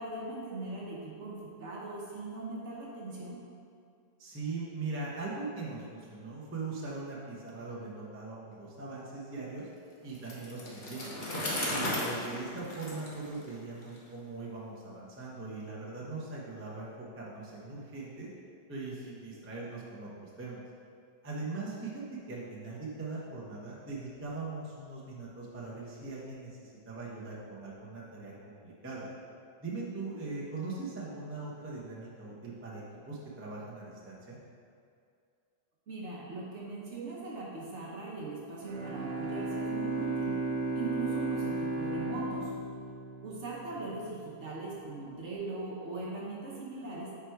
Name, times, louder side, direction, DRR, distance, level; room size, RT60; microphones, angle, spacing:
voice 1, 0.0-3.4 35.9-40.4 40.7-42.5 43.2-47.1, right 3 dB, 50° right, -4 dB, 1.0 m, -40 dB
voice 2, 4.2-9.7 10.0-11.3 11.7-18.3 18.7-20.6 21.2-29.1 29.6-34.4, right 3 dB, 20° right, -6 dB, 0.4 m, -40 dB
Bicycle, 10.1-14.0, left 1 dB, 40° left, 0.8 m, -36 dB
Bowed string instrument, 38.6-43.8, right 3 dB, 80° right, 1.4 m, -34 dB
4.9 x 4.6 x 4.5 m, 2.3 s
omnidirectional pair, 1.9 m